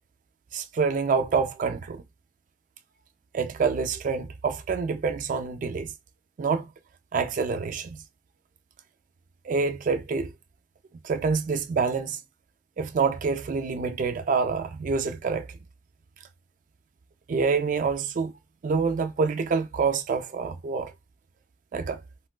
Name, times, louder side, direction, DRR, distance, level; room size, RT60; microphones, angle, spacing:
voice 1, 0.5-2.0 3.3-5.9 6.4-6.7 7.1-8.0 9.4-10.3 11.0-12.2 12.8-15.5 17.3-18.3 18.6-20.9 21.7-22.0, right 5 dB, 45° right, 0.3 m, -26 dB
3.4 x 2.2 x 2.3 m
head